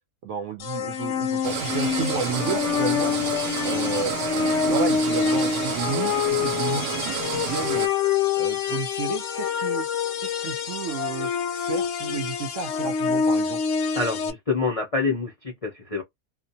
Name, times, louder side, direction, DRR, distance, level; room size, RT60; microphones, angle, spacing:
voice 1, 0.2-3.2 3.6-7.9 8.4-9.9 10.2-13.6, right 6 dB, 65° right, 0.8 m, -32 dB
sound 1, 0.6-14.3, left 7 dB, 65° left, 0.8 m, -26 dB
sound 2, 1.4-7.9, right 10 dB, 90° right, 1.1 m, -30 dB
voice 2, 13.9-16.0, left 4 dB, 45° left, 0.4 m, -26 dB
2.4 x 2.1 x 2.6 m
omnidirectional pair, 1.5 m